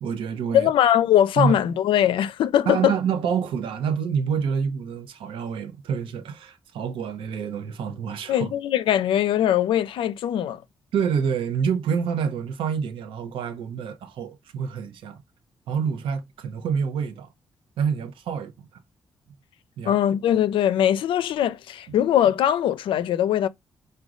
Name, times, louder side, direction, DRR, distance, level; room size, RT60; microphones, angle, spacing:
voice 1, 0.0-0.7 1.4-1.6 2.7-8.5 10.9-15.2 15.7-17.3 17.8-18.8 19.8-19.9, right 6 dB, 90° right, 0.7 m, -27 dB
voice 2, 0.5-2.9 8.3-10.6 19.9-23.5, left 10 dB, 85° left, 0.4 m, -21 dB
4.8 x 2.2 x 3.6 m
cardioid pair, 70°, 9 cm